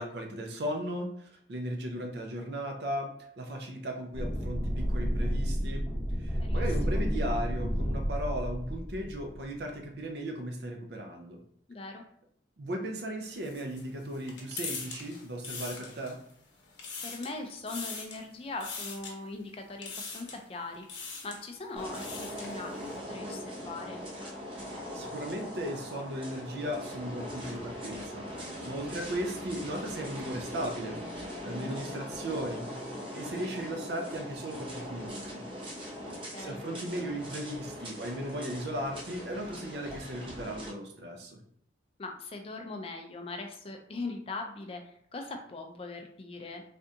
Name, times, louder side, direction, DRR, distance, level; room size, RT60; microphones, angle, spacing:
voice 1, 0.0-5.9 6.2-11.4 12.6-16.2 24.9-32.7 33.1-35.4 36.4-41.4, right 1 dB, 65° right, 3 dB, 0.5 m, -37 dB
sound 1, 4.1-9.5, equal, 5° right, 1.0 m, -31 dB
voice 2, 6.4-7.1 11.7-12.0 17.0-24.0 31.5-31.8 36.1-36.6 42.0-46.6, left 3 dB, 30° left, 4 dB, 0.3 m, -41 dB
sound 2, 13.2-16.3 16.6-17.4 17.7-18.2 18.6-19.1 19.8-20.4 20.8-21.4 21.8-22.6, left 4 dB, 80° left, 0.8 m, -41 dB
sound 3, 21.8-40.7, equal, 25° right, 0.7 m, -41 dB
3.4 x 2.5 x 2.7 m, 0.68 s
head